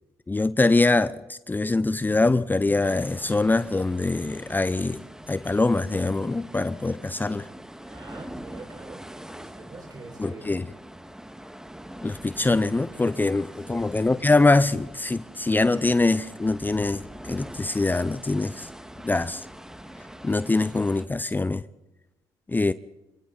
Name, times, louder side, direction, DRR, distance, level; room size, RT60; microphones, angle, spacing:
voice 1, 0.3-7.5 10.2-10.7 12.0-18.7 19.0-19.5 20.2-21.6 22.5-22.7, left 3 dB, 20° left, 0.7 m, -23 dB
sound 1, 2.8-21.1, right 1 dB, 5° right, 1.7 m, -43 dB
voice 2, 7.9-10.5 13.7-13.9 18.9-19.1, right 3 dB, 40° right, 5.6 m, -45 dB
27.5 x 25.0 x 4.1 m
supercardioid pair, 55°, 10 cm